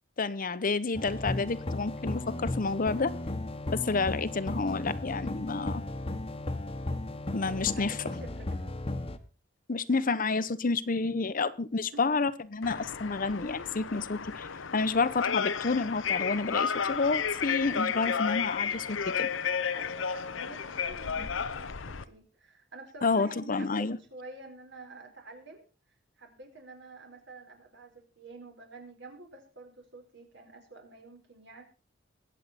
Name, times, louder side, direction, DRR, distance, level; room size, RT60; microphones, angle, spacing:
voice 1, 0.2-3.1 3.7-5.8 7.3-8.0 9.7-19.3 21.2-21.3 23.0-24.0, left 4 dB, 45° left, 0.8 m, -29 dB
sound 1, 0.9-9.2, left 1 dB, 30° left, 1.2 m, -35 dB
voice 2, 7.6-8.5 11.9-12.0 19.7-25.6 26.2-31.6, right 2 dB, 65° right, 4.3 m, -49 dB
sound 2, 12.6-22.0, left 6 dB, 90° left, 0.8 m, -32 dB
22.0 x 8.3 x 4.2 m
head